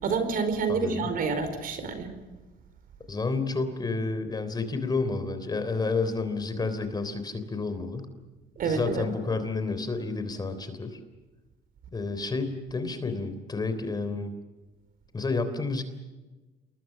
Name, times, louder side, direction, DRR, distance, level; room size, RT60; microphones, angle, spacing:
voice 1, 0.0-2.1 8.6-9.0, right 5 dB, 60° right, 9 dB, 4.7 m, -28 dB
voice 2, 0.7-1.1 3.1-8.1 8.6-11.0 11.9-14.3 15.1-15.8, left 3 dB, 25° left, 9 dB, 3.4 m, -30 dB
28.5 x 21.5 x 6.7 m, 1.2 s
cardioid pair, 110°, 17 cm